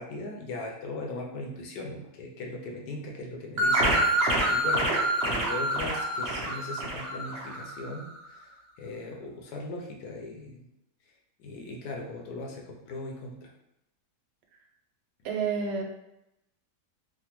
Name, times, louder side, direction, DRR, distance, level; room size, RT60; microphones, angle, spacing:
voice 1, 0.0-8.5 8.8-10.6 11.4-13.5, left 2 dB, 70° left, 0 dB, 1.0 m, -39 dB
sound 1, 3.6-7.9, right 1 dB, 55° right, 0.7 m, -27 dB
voice 2, 15.2-15.8, right 5 dB, 85° right, 1 dB, 1.2 m, -29 dB
3.3 x 2.1 x 2.9 m, 0.85 s
omnidirectional pair, 1.8 m